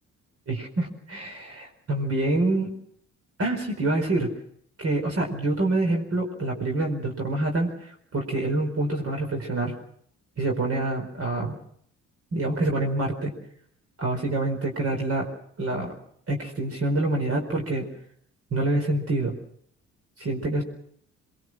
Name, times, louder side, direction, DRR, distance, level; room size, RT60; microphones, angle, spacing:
voice 1, 0.5-2.7 3.4-4.3 4.8-9.7 10.4-11.6 12.3-13.3 14.0-15.3 15.6-15.9 16.3-17.9 18.5-19.4 20.2-20.6, right 2 dB, 50° right, 2 dB, 4.7 m, -26 dB
24.0 x 21.5 x 6.2 m, 0.66 s
cardioid pair, 90°, 30 cm